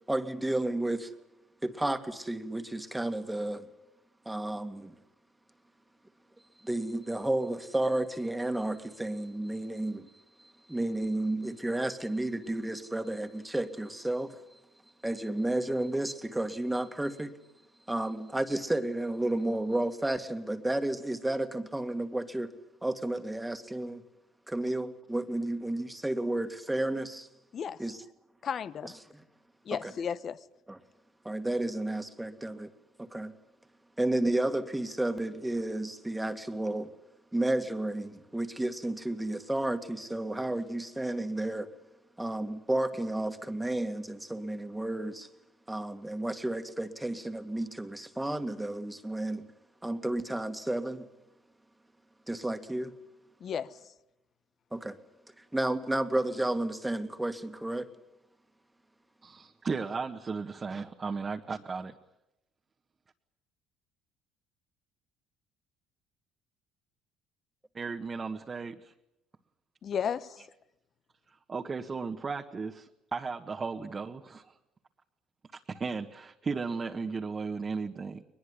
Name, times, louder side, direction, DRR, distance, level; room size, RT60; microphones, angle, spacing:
voice 1, 0.1-1.1 1.6-3.7 4.3-4.9 6.6-10.1 10.4-14.6 15.0-17.4 17.9-24.0 24.5-27.3 27.8-28.0 28.8-29.2 29.7-29.9 30.7-30.8 31.2-32.7 33.0-33.3 34.0-36.9 37.3-41.7 42.2-45.3 45.7-49.5 49.8-51.1 52.3-52.9 54.7-55.0 55.4-57.9, right 1 dB, 10° right, 2.1 m, -32 dB
voice 2, 28.4-28.9 29.7-30.4 53.4-53.8 69.8-70.4, left 7 dB, 50° left, 1.2 m, -33 dB
voice 3, 59.2-61.9 67.7-68.9 71.5-74.5 75.5-78.2, right 4 dB, 30° right, 1.6 m, -35 dB
21.5 x 21.0 x 10.0 m
supercardioid pair, 80°, 0 cm